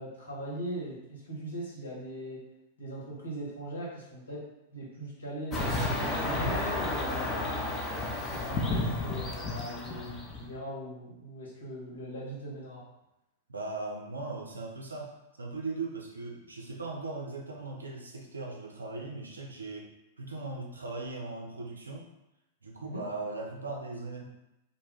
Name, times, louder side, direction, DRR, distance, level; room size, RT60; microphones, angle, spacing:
voice 1, 0.0-2.5 2.8-7.6 8.3-12.9 22.8-23.1, right 1 dB, 75° left, -6 dB, 0.9 m, -40 dB
sound 1, 5.5-10.6, left 2 dB, 25° left, 0.5 m, -32 dB
voice 2, 13.5-15.1 15.4-19.9 20.2-22.1 22.6-24.2, right 3 dB, 80° right, 0 dB, 0.5 m, -38 dB
2.2 x 2.1 x 3.2 m, 0.91 s
figure-of-eight pair, 95°, 0 cm